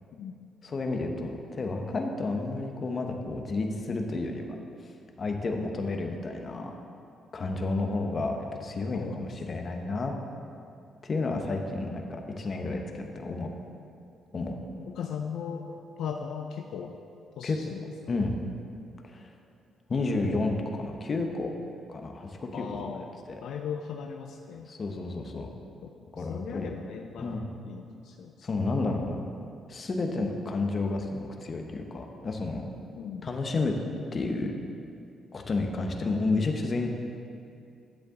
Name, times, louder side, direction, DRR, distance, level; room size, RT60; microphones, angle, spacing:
voice 1, 0.6-4.6 5.2-6.7 7.3-10.1 11.0-13.5 14.3-14.6 17.4-17.6 18.1-18.3 19.0-19.3 19.9-21.5 21.9-22.8 23.3-23.4 24.7-25.5 26.1-26.7 27.2-27.5 28.4-29.2 29.7-32.7 33.2-33.8 34.1-34.5 35.3-36.9, left 3 dB, 40° left, 3 dB, 0.9 m, -31 dB
voice 2, 14.9-17.0 17.4-17.8 22.5-23.1 23.4-24.7 25.8-28.5 30.0-30.2 33.0-33.3 35.9-36.1, left 7 dB, 75° left, 4 dB, 0.4 m, -38 dB
9.5 x 7.7 x 3.8 m, 2.5 s
cardioid pair, 90°, 0 cm